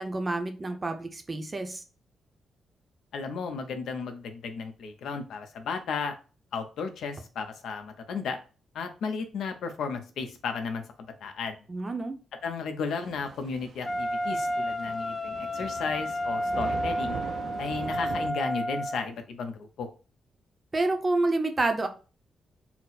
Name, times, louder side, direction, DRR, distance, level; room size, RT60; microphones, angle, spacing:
voice 1, 0.0-1.8 11.7-12.1 20.7-21.9, right 2 dB, 20° right, 6 dB, 0.6 m, -28 dB
voice 2, 3.1-6.1 6.5-8.4 8.7-10.8 11.2-11.6 12.4-17.2 17.6-19.9, left 5 dB, 80° left, 6 dB, 0.7 m, -34 dB
Thunder / Rain, 13.0-18.3, right 6 dB, 65° right, 0.4 m, -41 dB
Wind instrument woodwind instrument, 13.8-19.1, equal, 25° left, 0.3 m, -31 dB
4.3 x 2.0 x 4.0 m, 0.34 s
wide cardioid pair, 140°, 0 cm